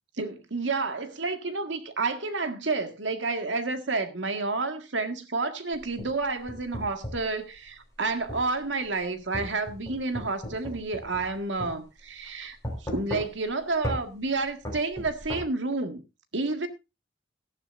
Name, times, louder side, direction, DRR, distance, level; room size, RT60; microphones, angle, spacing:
voice 1, 0.2-16.0 16.3-16.7, right 3 dB, 75° right, 1.8 m, -30 dB
sound 1, 5.7-7.3 8.3-8.5 9.3-11.3 11.6-11.7 12.6-13.5 13.8-14.0 14.7-15.4, equal, 15° left, 5.1 m, -35 dB
17.5 x 11.5 x 2.6 m
head